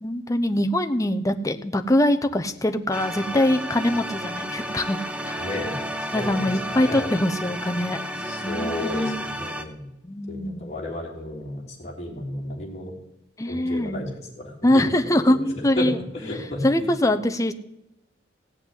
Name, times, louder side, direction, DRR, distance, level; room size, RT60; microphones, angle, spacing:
voice 1, 0.0-5.0 5.2-5.4 6.1-8.0 8.4-9.2 10.0-10.7 13.4-14.0 14.6-16.0 16.6-17.5, left 1 dB, 20° left, 8 dB, 0.7 m, -23 dB
sound 1, 2.9-9.6, equal, 5° right, 0.9 m, -32 dB
voice 2, 5.4-7.1 8.2-9.9 10.3-12.9 13.5-16.9, left 1 dB, 35° left, -3 dB, 3.2 m, -33 dB
16.0 x 5.8 x 9.8 m, 0.88 s
head